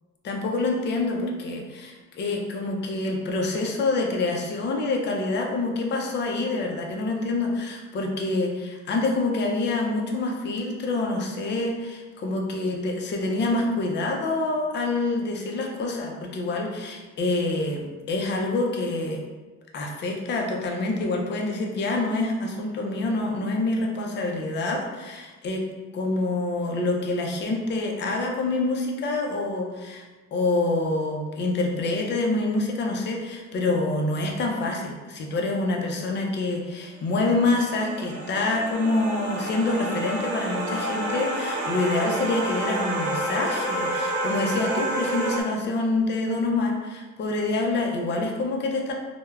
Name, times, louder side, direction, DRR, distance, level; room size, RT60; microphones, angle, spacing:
voice 1, 0.2-19.2 19.7-25.6 25.9-30.0 30.3-48.9, left 2 dB, 40° left, 1 dB, 0.4 m, -26 dB
sound 1, 37.0-45.4, right 1 dB, 80° right, 0.6 m, -29 dB
3.2 x 2.0 x 2.3 m, 1.3 s
cardioid pair, 145°, 30 cm